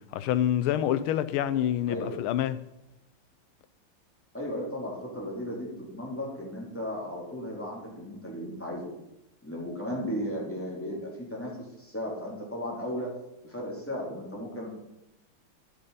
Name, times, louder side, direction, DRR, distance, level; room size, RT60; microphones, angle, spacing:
voice 1, 0.1-2.6, left 11 dB, 85° left, 1.5 m, -27 dB
voice 2, 4.3-8.9 9.4-11.5 11.8-13.1 13.4-14.7, equal, 5° left, 2.7 m, -35 dB
10.5 x 6.6 x 5.4 m
omnidirectional pair, 2.3 m